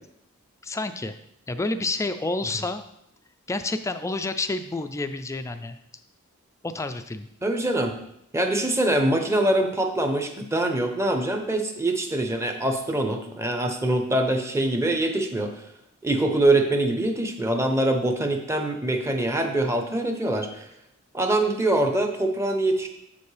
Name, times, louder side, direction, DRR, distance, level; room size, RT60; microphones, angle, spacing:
voice 1, 0.6-1.1 1.5-2.8 3.5-5.8 6.6-7.3, left 2 dB, 15° left, 9 dB, 0.3 m, -29 dB
voice 2, 7.4-7.9 8.3-15.5 16.0-20.7 21.1-22.9, right 1 dB, 15° right, 5 dB, 0.7 m, -24 dB
7.7 x 6.9 x 3.3 m, 0.77 s
head